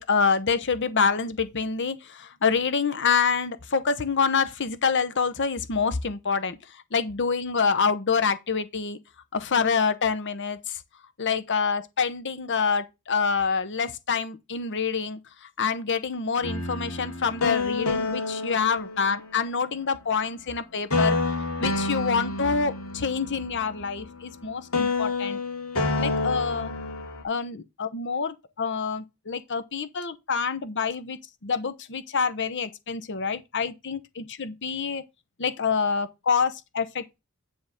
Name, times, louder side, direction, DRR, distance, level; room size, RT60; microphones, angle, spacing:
voice 1, 0.0-9.0 9.3-10.8 11.2-21.2 21.6-25.4 26.0-26.7 27.2-35.0 35.4-37.2, left 5 dB, 55° left, 0.9 m, -27 dB
sound 1, 16.4-19.6 20.9-24.4 24.7-27.2, left 3 dB, 75° left, 2.4 m, -29 dB
10.0 x 3.6 x 6.4 m
head